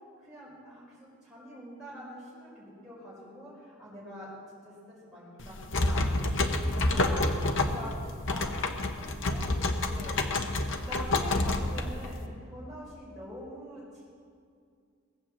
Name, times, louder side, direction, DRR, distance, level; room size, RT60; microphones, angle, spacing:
voice 1, 0.2-8.5 8.9-9.5 9.8-10.4 10.8-14.0, equal, ahead, -10 dB, 4.7 m, -45 dB
sound 1, 5.4-12.2, left 2 dB, 60° left, 1.1 m, -28 dB
19.5 x 7.9 x 7.6 m, 2.3 s
head